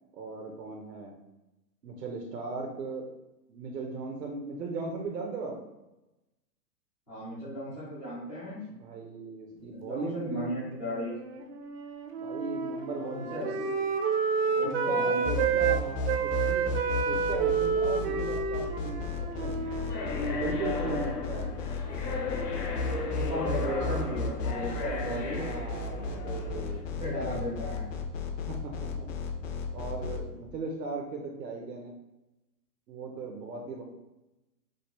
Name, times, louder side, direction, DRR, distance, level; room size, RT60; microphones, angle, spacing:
voice 1, 0.1-1.1 1.8-3.1 3.5-5.6 8.8-10.5 12.2-13.8 14.6-16.7 17.1-19.6 20.2-21.5 25.2-26.8 28.5-29.1 29.7-31.9 32.9-33.8, right 3 dB, 75° right, -1 dB, 0.9 m, -38 dB
voice 2, 7.1-8.6 9.7-11.1 13.0-13.5 14.4-15.5 23.1-25.4 26.9-27.8, equal, 5° left, -14 dB, 0.3 m, -35 dB
Wind instrument woodwind instrument, 10.9-15.8 16.1-21.4, right 5 dB, 40° right, 0.6 m, -30 dB
sound 1, 15.2-30.2, left 3 dB, 50° left, 0.8 m, -33 dB
sound 2, 19.2-26.8, left 3 dB, 70° left, 1.4 m, -36 dB
5.1 x 2.1 x 4.2 m, 0.97 s
hypercardioid pair, 140°, 49 cm